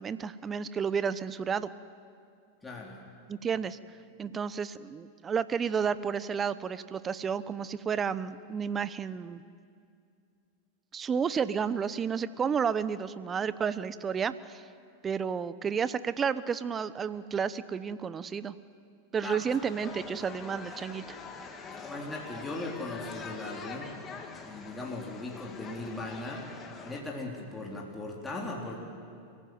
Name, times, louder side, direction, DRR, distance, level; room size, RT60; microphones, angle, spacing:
voice 1, 0.0-1.7 3.3-3.8 4.2-9.4 10.9-14.7 15.0-18.5 19.1-21.2, right 6 dB, 25° right, 15 dB, 0.8 m, -31 dB
voice 2, 2.6-3.0 19.2-19.4 21.8-23.9 24.4-26.5 26.8-28.8, left 2 dB, 10° left, -2 dB, 3.9 m, -38 dB
sound 1, 19.4-27.0, left 5 dB, 25° left, 2.9 m, -44 dB
28.5 x 15.5 x 9.4 m, 2.4 s
hypercardioid pair, 95°, 0 cm